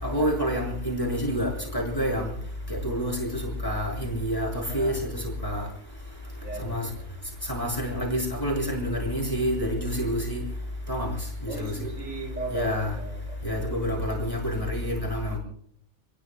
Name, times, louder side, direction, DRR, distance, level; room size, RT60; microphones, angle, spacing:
voice 1, 0.0-2.3 2.7-5.7 6.6-6.9 7.5-10.4 10.9-11.1 11.4-11.9 12.5-12.9 13.4-15.4, equal, 15° left, 6.6 m, -28 dB
voice 2, 6.4-7.0 11.5-13.4, right 2 dB, 70° right, 7.3 m, -36 dB
29.5 x 21.0 x 2.3 m
omnidirectional pair, 1.4 m